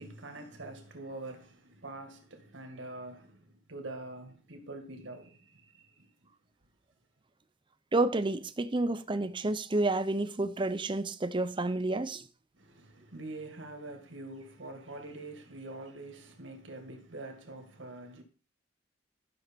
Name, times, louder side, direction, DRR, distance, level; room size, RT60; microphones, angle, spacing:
voice 1, 0.0-6.3 12.6-18.2, right 2 dB, 85° right, 2.1 m, -45 dB
voice 2, 7.9-12.2, right 2 dB, 25° right, 0.7 m, -30 dB
12.5 x 6.4 x 4.5 m
head